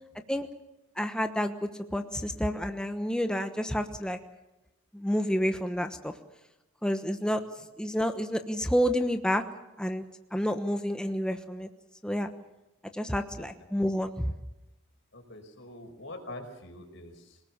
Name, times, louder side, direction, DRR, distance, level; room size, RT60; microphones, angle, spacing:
voice 1, 1.0-4.2 4.9-6.1 6.8-7.4 7.8-9.4 9.8-10.0 10.3-11.7 12.0-12.3 12.9-14.3, equal, 5° left, 6 dB, 1.1 m, -29 dB
voice 2, 13.2-13.5 15.1-17.4, left 1 dB, 55° left, 5 dB, 5.1 m, -45 dB
27.0 x 19.0 x 7.3 m, 0.94 s
head